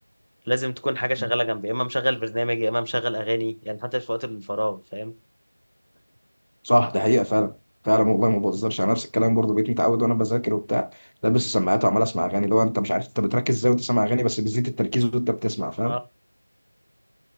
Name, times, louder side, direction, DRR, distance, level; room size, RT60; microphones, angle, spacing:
voice 1, 0.5-5.1 15.8-16.0, equal, 80° right, 0.6 m, -26 dB
voice 2, 6.6-7.5 7.8-11.0 11.2-16.0, equal, 50° left, 0.4 m, -22 dB
4.5 x 4.0 x 2.4 m
figure-of-eight pair, 180°, 0 cm